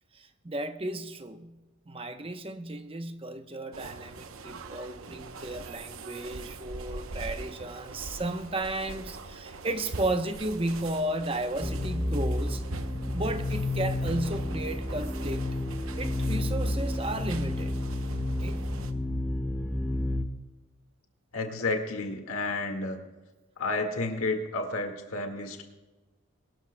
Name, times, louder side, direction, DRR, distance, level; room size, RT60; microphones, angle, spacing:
voice 1, 0.1-12.6 13.1-15.4 16.0-17.8 18.4-18.7, right 1 dB, 25° right, 8 dB, 0.8 m, -34 dB
sound 1, 3.7-18.9, right 3 dB, 75° right, 0.9 m, -42 dB
sound 2, 11.6-20.2, left 1 dB, 5° left, 0.8 m, -31 dB
voice 2, 21.3-23.0 23.6-25.6, left 2 dB, 90° left, 4 dB, 1.9 m, -31 dB
23.5 x 13.0 x 2.2 m, 1.2 s
head